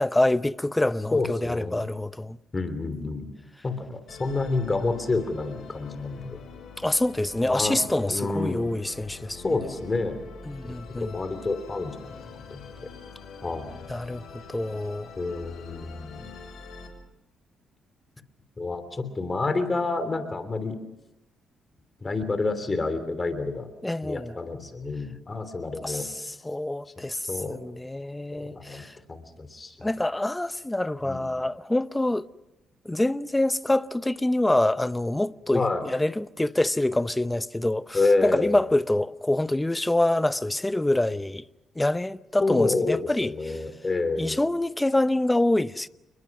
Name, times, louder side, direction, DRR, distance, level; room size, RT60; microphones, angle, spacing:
voice 1, 0.0-2.4 6.8-9.7 10.5-11.2 13.9-15.1 23.8-24.3 25.8-29.0 29.8-32.3 32.8-41.4 41.8-43.6 44.2-45.9, left 1 dB, 10° left, 0.7 m, -26 dB
voice 2, 1.1-1.8 2.5-3.3 3.6-6.4 7.5-8.7 9.3-10.2 10.6-12.2 12.5-12.9 13.4-13.7 15.2-16.2 18.6-20.8 22.0-23.7 24.0-26.1 27.3-27.6 28.3-29.9 31.0-31.3 35.5-35.8 37.9-38.6 42.4-44.4, left 3 dB, 25° left, 3.2 m, -28 dB
Musical instrument, 4.1-16.9, left 5 dB, 60° left, 6.8 m, -44 dB
28.5 x 21.5 x 6.1 m
cardioid pair, 90°, 0 cm